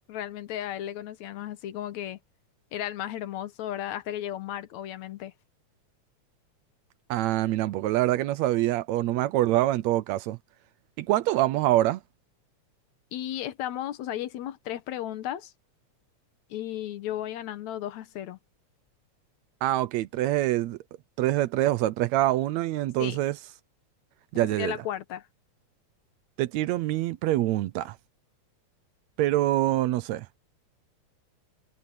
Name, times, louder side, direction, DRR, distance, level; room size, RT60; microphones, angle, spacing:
voice 1, 0.1-2.2 2.7-5.3 13.1-15.5 16.5-18.4 23.0-23.2 24.5-25.3, left 12 dB, 75° left, 2.2 m, -34 dB
voice 2, 7.1-10.4 11.0-12.0 19.6-20.8 21.2-23.4 24.3-24.7 26.4-28.0 29.2-30.3, right 15 dB, 75° right, 1.8 m, -25 dB
omnidirectional pair, 3.4 m